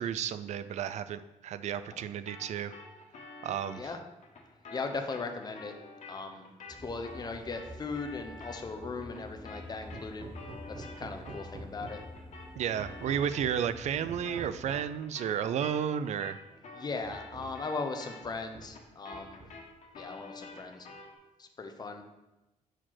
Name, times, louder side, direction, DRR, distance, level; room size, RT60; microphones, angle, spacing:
voice 1, 0.0-2.8 3.4-3.9 12.6-16.4, right 8 dB, 65° right, 13 dB, 0.4 m, -32 dB
sound 1, 2.3-11.6 11.9-21.2, left 3 dB, 65° left, 1.5 m, -49 dB
voice 2, 4.7-5.7 6.1-6.5 6.8-10.3 10.8-12.0 16.7-19.4 19.9-20.9 21.4-22.0, left 4 dB, 30° left, 5 dB, 0.8 m, -38 dB
sound 2, 6.7-14.6, left 1 dB, 5° left, 1.0 m, -49 dB
Hammer, 9.9-12.2 12.7-13.6 14.0-15.0 16.0-16.1 16.5-16.6 17.0-17.7 18.2-18.8 19.1-19.8, right 3 dB, 45° right, 0.8 m, -48 dB
4.7 x 4.4 x 5.8 m, 0.99 s
cardioid pair, 110°, 13 cm